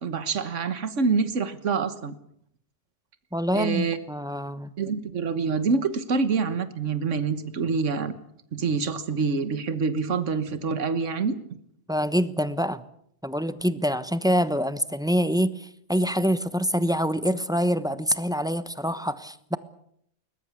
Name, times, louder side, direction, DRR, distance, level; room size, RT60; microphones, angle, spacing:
voice 1, 0.0-2.1 3.5-4.0 4.8-8.1 8.5-11.4, right 5 dB, 85° right, 11 dB, 1.6 m, -26 dB
voice 2, 3.3-4.7 11.9-12.8 13.2-19.6, equal, 5° right, 13 dB, 1.0 m, -25 dB
21.5 x 20.0 x 8.3 m, 0.71 s
omnidirectional pair, 1.2 m